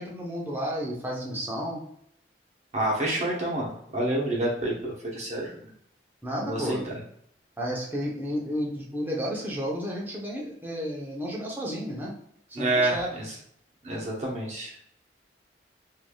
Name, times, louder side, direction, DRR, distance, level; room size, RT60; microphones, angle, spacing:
voice 1, 0.0-1.8 6.2-6.9 7.6-12.2 12.5-13.1, equal, 10° right, -4 dB, 0.7 m, -32 dB
voice 2, 2.7-5.5 6.4-7.0 12.5-13.3 13.8-14.7, right 1 dB, 40° right, -3 dB, 1.0 m, -28 dB
3.3 x 2.7 x 2.3 m, 0.68 s
head